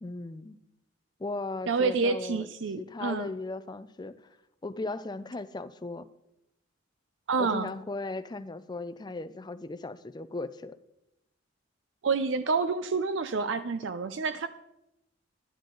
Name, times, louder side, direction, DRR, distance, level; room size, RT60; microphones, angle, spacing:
voice 1, 0.0-0.6 1.2-2.5 2.8-4.2 4.6-6.1 7.4-10.7, left 2 dB, 20° left, 12 dB, 0.4 m, -37 dB
voice 2, 1.7-3.3 7.3-7.7 12.0-14.5, right 4 dB, 65° right, 12 dB, 0.5 m, -28 dB
11.5 x 11.0 x 3.9 m, 0.86 s
head